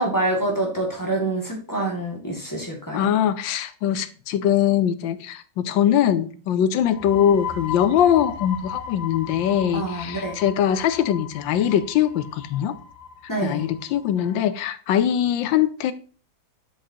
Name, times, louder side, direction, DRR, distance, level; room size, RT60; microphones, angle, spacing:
voice 1, 0.0-3.1 9.7-10.4 13.3-13.6, right 2 dB, 10° left, 2.0 m, -26 dB
voice 2, 2.9-12.8 13.4-15.9, left 10 dB, 85° left, 1.4 m, -22 dB
sound 1, 6.8-14.3, left 7 dB, 55° left, 3.1 m, -36 dB
7.5 x 7.3 x 2.8 m
omnidirectional pair, 2.0 m